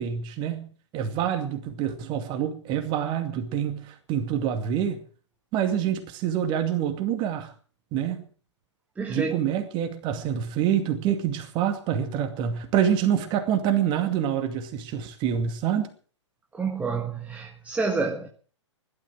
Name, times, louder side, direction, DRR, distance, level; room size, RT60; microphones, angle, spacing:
voice 1, 0.0-5.0 5.5-7.5 7.9-8.2 9.1-15.9, right 9 dB, 30° right, 2.4 m, -26 dB
voice 2, 9.0-9.4 16.5-18.3, right 4 dB, 10° right, 1.5 m, -28 dB
16.0 x 12.5 x 6.2 m
figure-of-eight pair, 110°, 16 cm